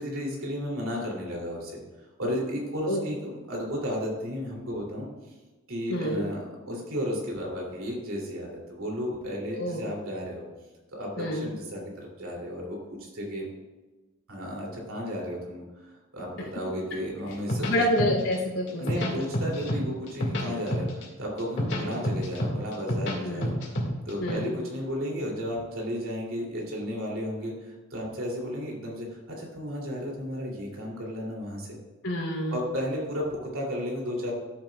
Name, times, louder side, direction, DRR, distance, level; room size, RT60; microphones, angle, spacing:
voice 1, 0.0-1.8 2.2-3.2 3.5-5.3 5.7-10.5 10.9-13.5 14.3-17.9 18.8-23.8 24.1-31.8 32.5-34.3, equal, 75° right, -1 dB, 2.9 m, -33 dB
voice 2, 5.9-6.2 9.5-9.8 11.2-11.5 17.7-19.2 21.8-21.9 23.2-23.5 24.2-24.5 32.0-32.6, equal, 85° left, -1 dB, 3.1 m, -28 dB
sound 1, 17.3-18.3 18.7-19.8 20.1-21.0 21.4-23.2 23.4-24.3, equal, 60° left, 2.1 m, -28 dB
13.0 x 7.9 x 2.4 m, 1.2 s
head